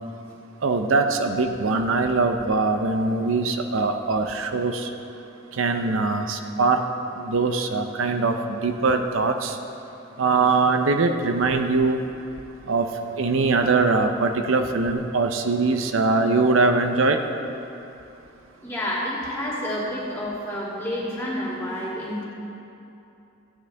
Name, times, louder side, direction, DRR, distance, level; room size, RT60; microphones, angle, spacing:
voice 1, 0.6-4.9 5.6-6.8 7.2-9.6 10.2-12.0 12.7-12.9 13.2-17.2, right 3 dB, 80° right, 6 dB, 0.6 m, -22 dB
voice 2, 18.6-22.2, left 1 dB, 10° left, -8 dB, 2.5 m, -29 dB
15.5 x 9.4 x 3.4 m, 2.8 s
head